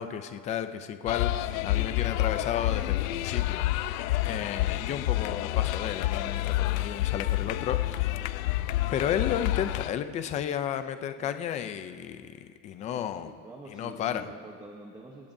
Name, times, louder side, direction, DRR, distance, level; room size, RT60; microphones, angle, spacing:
voice 1, 0.0-3.9 4.2-8.3 8.9-13.3 13.7-14.3, left 9 dB, 20° left, 9 dB, 0.3 m, -33 dB
sound 1, 1.1-9.9, left 15 dB, 85° left, 0.7 m, -28 dB
voice 2, 4.5-5.2 8.6-8.8 11.2-11.4 12.9-15.3, right 2 dB, 10° right, 0 dB, 0.9 m, -48 dB
27.0 x 16.0 x 2.6 m, 2.1 s
cardioid pair, 165°, 40 cm